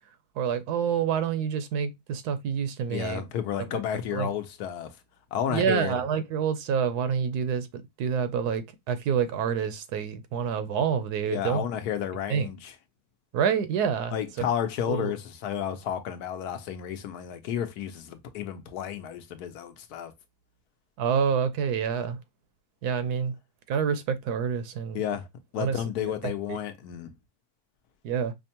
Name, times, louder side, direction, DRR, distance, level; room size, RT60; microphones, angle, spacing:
voice 1, 0.4-3.2 3.7-3.8 4.1-4.3 5.5-11.6 12.3-12.5 13.3-14.2 14.9-15.1 21.0-22.2 22.8-23.3 23.7-25.0 25.6-26.6 28.0-28.3, right 7 dB, 80° right, 1.2 m, -27 dB
voice 2, 2.9-5.0 5.3-5.9 11.3-12.7 14.1-20.1 24.9-25.3 25.5-27.1, left 9 dB, 75° left, 1.2 m, -32 dB
5.1 x 2.2 x 2.7 m
omnidirectional pair, 1.7 m